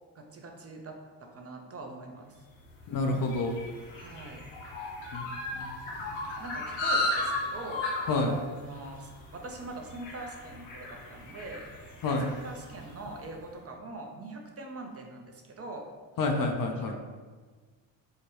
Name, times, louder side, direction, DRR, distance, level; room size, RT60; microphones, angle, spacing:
voice 1, 0.1-2.4 3.9-4.4 6.4-7.9 8.6-11.7 12.4-15.9 16.8-17.0, right 2 dB, 30° right, 2 dB, 0.7 m, -43 dB
sound 1, 2.6-13.2, left 2 dB, 70° left, 1.1 m, -36 dB
voice 2, 2.9-3.6 5.1-5.3 5.5-5.7 8.1-8.3 12.0-12.3 16.2-17.0, left 2 dB, 45° left, 2 dB, 0.6 m, -28 dB
4.5 x 2.2 x 3.0 m, 1.4 s
hypercardioid pair, 60°, 46 cm